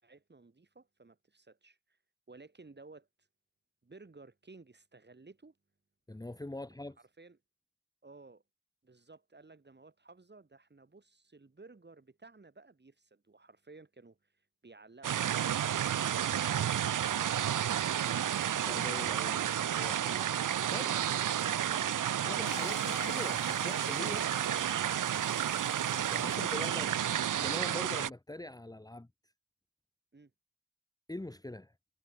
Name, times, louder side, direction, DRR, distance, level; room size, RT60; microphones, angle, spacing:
voice 1, 0.0-2.0 2.3-3.3 3.8-5.6 7.0-7.4 8.0-8.4 8.8-18.3 30.1-30.3, right 3 dB, 30° right, 5.9 m, -56 dB
voice 2, 6.1-7.0 18.6-20.0 20.7-20.9 22.2-24.4 26.1-27.0 27.4-29.1 31.1-31.7, left 2 dB, 10° left, 1.5 m, -43 dB
sound 1, 15.0-28.1, right 10 dB, 65° right, 0.7 m, -31 dB
sound 2, 22.4-27.5, left 7 dB, 80° left, 5.6 m, -50 dB
wide cardioid pair, 95°, 34 cm